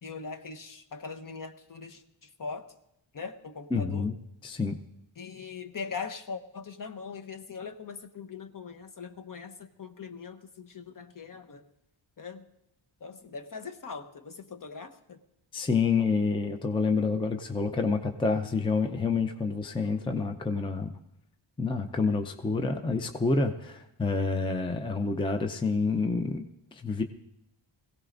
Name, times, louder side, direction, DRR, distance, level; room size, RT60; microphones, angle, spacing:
voice 1, 0.0-2.7 3.1-4.1 5.2-11.6 12.2-12.4 13.0-15.2, left 5 dB, 40° left, 6 dB, 0.9 m, -41 dB
voice 2, 3.7-4.1 4.4-4.8 15.5-20.9 21.6-27.0, left 4 dB, 10° left, 5 dB, 0.6 m, -28 dB
21.0 x 16.5 x 2.6 m, 0.82 s
wide cardioid pair, 135°, 49 cm